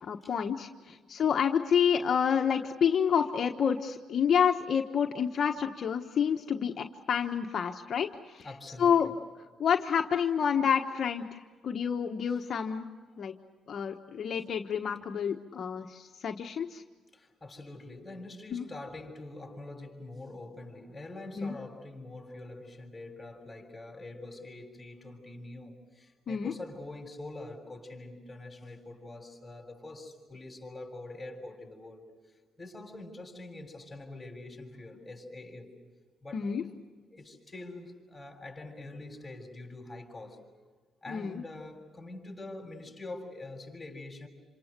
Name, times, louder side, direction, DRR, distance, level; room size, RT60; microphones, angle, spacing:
voice 1, 0.1-8.4 8.8-9.1 9.6-12.9 13.2-13.3 13.7-16.8 18.5-18.6 21.4-21.5 26.3-26.5 36.3-36.6 41.1-41.4, left 7 dB, 55° left, 3 dB, 1.2 m, -28 dB
voice 2, 8.4-9.1 12.3-12.4 13.2-13.3 17.1-32.0 32.6-35.7 36.2-36.7 37.1-40.4 41.0-44.3, left 2 dB, 10° left, 2 dB, 7.0 m, -45 dB
28.0 x 27.0 x 6.7 m, 1.4 s
cardioid pair, 90°, 0 cm